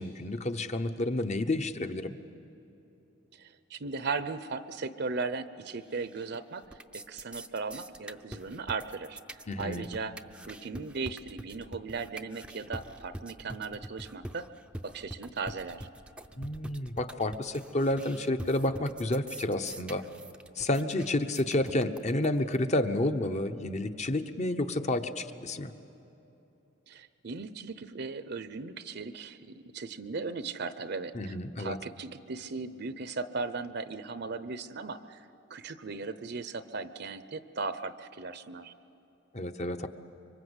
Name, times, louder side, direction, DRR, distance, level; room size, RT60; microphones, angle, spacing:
voice 1, 0.0-2.1 9.5-9.8 16.3-20.0 20.6-25.7 31.1-31.8 39.3-39.9, left 1 dB, 35° left, 8 dB, 0.9 m, -30 dB
voice 2, 3.3-6.6 6.9-10.2 10.5-14.5 14.8-15.9 26.9-38.7, right 4 dB, 60° right, 12 dB, 0.8 m, -37 dB
sound 1, 5.9-6.4 6.6-22.6, right 1 dB, 5° right, 0.6 m, -44 dB
25.5 x 24.0 x 8.1 m, 3.0 s
head